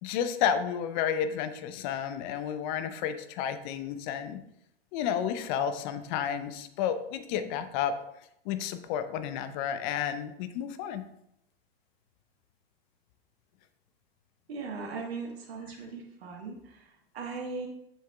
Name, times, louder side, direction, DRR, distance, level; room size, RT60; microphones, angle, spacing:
voice 1, 0.0-4.4 4.9-7.9 8.5-11.0, left 8 dB, 50° left, 10 dB, 0.7 m, -31 dB
voice 2, 14.5-17.7, right 4 dB, 80° right, -1 dB, 1.4 m, -39 dB
7.9 x 6.4 x 2.3 m, 0.80 s
hypercardioid pair, 105°, 30 cm